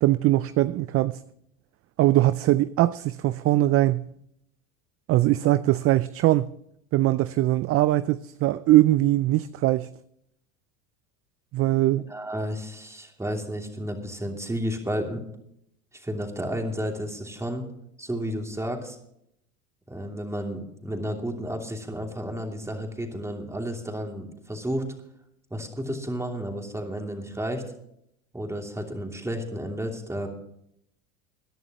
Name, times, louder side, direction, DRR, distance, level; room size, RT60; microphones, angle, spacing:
voice 1, 0.0-1.2 2.0-4.0 5.1-6.5 6.9-9.9 11.5-12.0, right 16 dB, 35° right, 0.4 m, -21 dB
voice 2, 11.9-15.2 15.9-17.7 18.0-19.0 19.9-24.9 25.5-27.6 28.3-30.3, equal, 5° right, 2.9 m, -32 dB
22.0 x 11.0 x 3.0 m
hypercardioid pair, 95°, 39 cm